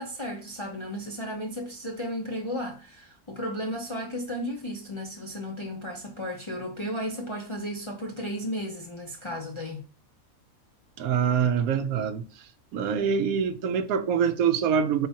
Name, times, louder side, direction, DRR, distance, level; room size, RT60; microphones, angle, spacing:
voice 1, 0.0-9.8, equal, 35° left, 0.5 m, -34 dB
voice 2, 11.0-12.3 12.7-15.1, right 7 dB, 80° right, 1.0 m, -25 dB
4.5 x 3.7 x 2.8 m
omnidirectional pair, 1.5 m